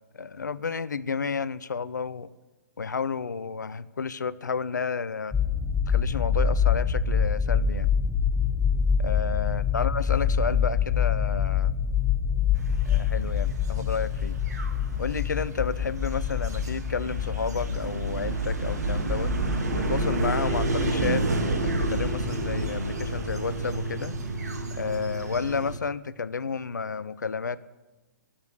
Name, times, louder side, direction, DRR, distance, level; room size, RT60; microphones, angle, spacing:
voice 1, 0.2-2.3 2.8-5.3 5.9-7.9 9.0-11.7 12.9-14.3 15.0-19.3 19.8-24.1 24.8-27.6, left 5 dB, 75° left, 17 dB, 0.5 m, -31 dB
sound 1, 5.3-23.4, left 7 dB, 5° left, 0.6 m, -27 dB
sound 2, 12.6-25.8, right 3 dB, 60° right, 1.6 m, -30 dB
12.5 x 6.9 x 8.1 m, 1.1 s
figure-of-eight pair, 120°, 10 cm